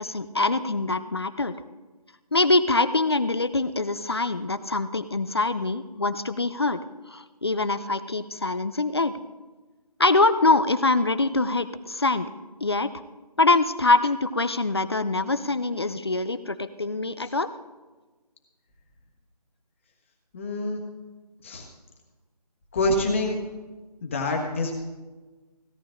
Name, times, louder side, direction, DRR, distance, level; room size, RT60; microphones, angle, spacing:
voice 1, 0.0-1.6 2.3-6.8 7.1-9.2 10.0-12.3 12.6-12.9 13.4-17.5, left 3 dB, 40° left, 13 dB, 0.5 m, -24 dB
voice 2, 20.3-20.8 21.4-21.6 22.7-23.4 24.0-24.8, left 2 dB, 20° left, 0 dB, 1.4 m, -26 dB
16.5 x 12.0 x 3.8 m, 1.2 s
figure-of-eight pair, 165°, 21 cm